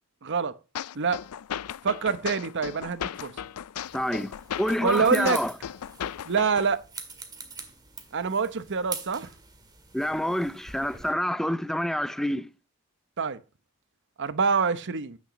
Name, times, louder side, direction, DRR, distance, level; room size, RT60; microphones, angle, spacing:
voice 1, 0.2-0.6 0.9-1.2 1.8-3.3 4.8-5.4 6.2-6.8 8.1-9.3 13.2-13.4 14.2-15.2, right 5 dB, 55° right, 0.9 m, -26 dB
sound 1, 0.7-6.7, left 9 dB, 80° left, 0.4 m, -36 dB
sound 2, 3.8-11.1, right 4 dB, 20° right, 1.9 m, -44 dB
voice 2, 3.9-5.5 9.9-12.5, equal, ahead, 0.5 m, -28 dB
10.0 x 8.7 x 3.1 m
head